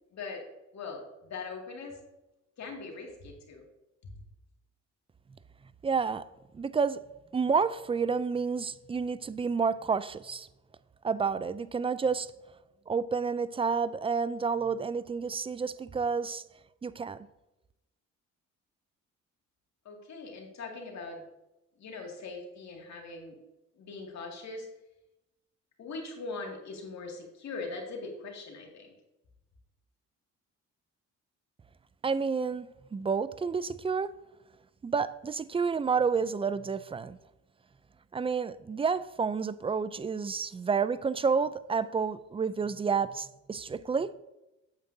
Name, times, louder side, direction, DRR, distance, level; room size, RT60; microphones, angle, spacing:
voice 1, 0.1-0.4 0.7-2.0 2.6-3.6 19.8-21.3 21.8-23.3 23.8-24.7 25.8-28.9, left 3 dB, 65° left, 1 dB, 2.3 m, -41 dB
voice 2, 5.8-6.2 6.5-7.0 7.3-10.5 11.0-12.3 12.9-16.4 16.8-17.2 32.0-32.7 32.9-34.1 34.8-37.2 38.1-44.1, right 5 dB, 20° right, 16 dB, 0.4 m, -30 dB
9.0 x 7.8 x 2.7 m, 0.96 s
cardioid pair, 90°, 30 cm